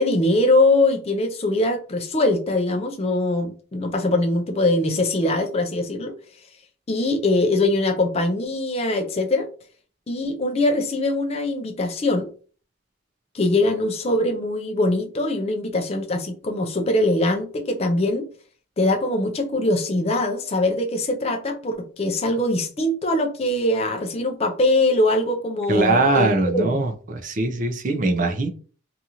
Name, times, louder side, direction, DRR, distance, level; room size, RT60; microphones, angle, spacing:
voice 1, 0.0-6.1 6.9-9.5 10.1-12.3 13.3-18.3 18.8-26.8, left 2 dB, 30° left, 0.4 m, -22 dB
voice 2, 25.7-28.5, right 2 dB, 40° right, 0.4 m, -21 dB
2.6 x 2.4 x 2.8 m
head